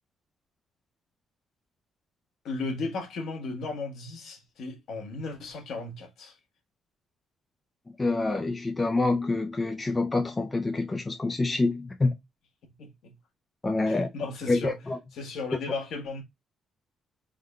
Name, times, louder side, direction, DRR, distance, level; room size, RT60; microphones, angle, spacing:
voice 1, 2.4-6.3 12.8-13.1 13.9-14.8 15.2-16.2, left 3 dB, 60° left, 1.1 m, -35 dB
voice 2, 8.0-12.1 13.6-14.1 14.5-15.0, left 3 dB, 15° left, 0.3 m, -26 dB
3.7 x 2.1 x 3.4 m
cardioid pair, 175°, 0 cm